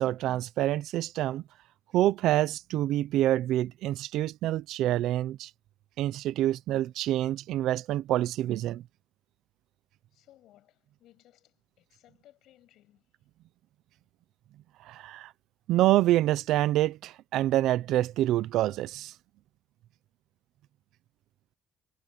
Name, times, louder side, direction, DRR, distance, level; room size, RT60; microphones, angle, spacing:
voice 1, 0.0-1.4 1.9-5.5 6.0-8.8 14.9-15.3 15.7-19.1, right 14 dB, 80° right, 0.7 m, -27 dB
voice 2, 10.1-13.1, left 14 dB, 75° left, 6.7 m, -61 dB
cardioid pair, 165°, 0 cm